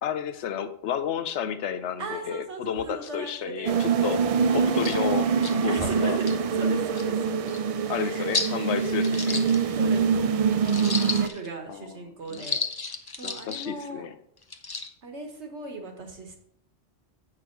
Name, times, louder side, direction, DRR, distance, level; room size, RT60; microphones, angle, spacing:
voice 1, 0.0-4.2 4.5-5.3 5.6-6.2 7.9-9.4 11.7-11.9 12.3-12.5 13.2-14.1, left 9 dB, 85° left, 11 dB, 1.0 m, -31 dB
voice 2, 2.0-3.8 5.7-7.4 7.9-8.3 9.8-12.6 13.2-14.1 15.0-16.4, right 4 dB, 85° right, 3 dB, 1.7 m, -37 dB
sound 1, 3.7-11.3, right 6 dB, 65° right, 0.3 m, -24 dB
sound 2, 4.4-4.5 4.8-5.0 5.4-5.5 6.1-6.4 7.0-7.1 7.5-7.6 8.3-8.6 9.0-10.0 10.6-11.5 12.3-13.7 14.4-14.9, left 4 dB, 25° left, 0.5 m, -32 dB
7.8 x 6.1 x 4.6 m, 0.71 s
omnidirectional pair, 1.1 m